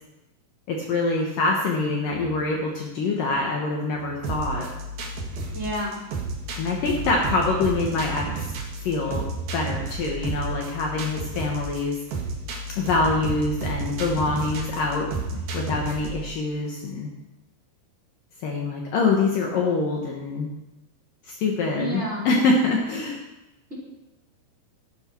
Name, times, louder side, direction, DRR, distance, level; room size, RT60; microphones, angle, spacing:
voice 1, 0.7-4.7 6.6-8.4 8.8-9.3 9.5-12.0 12.7-15.1 15.5-17.1 18.4-20.5 21.3-23.2, left 3 dB, 65° left, 0 dB, 2.7 m, -25 dB
sound 1, 4.2-16.2, right 3 dB, 65° right, 3.4 m, -32 dB
voice 2, 5.5-6.0 21.7-22.3, right 1 dB, 15° right, -5 dB, 5.0 m, -30 dB
14.0 x 12.5 x 4.5 m, 0.96 s
omnidirectional pair, 4.8 m